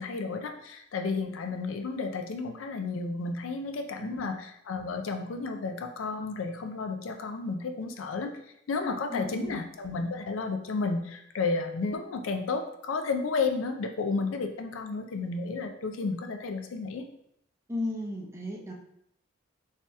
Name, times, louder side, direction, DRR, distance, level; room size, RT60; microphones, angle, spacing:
voice 1, 0.0-8.3 8.7-17.1, left 4 dB, 75° left, 6 dB, 0.4 m, -32 dB
voice 2, 4.0-4.3 9.1-9.6 17.7-18.7, left 1 dB, 15° right, -1 dB, 0.6 m, -35 dB
3.2 x 2.8 x 3.3 m, 0.75 s
head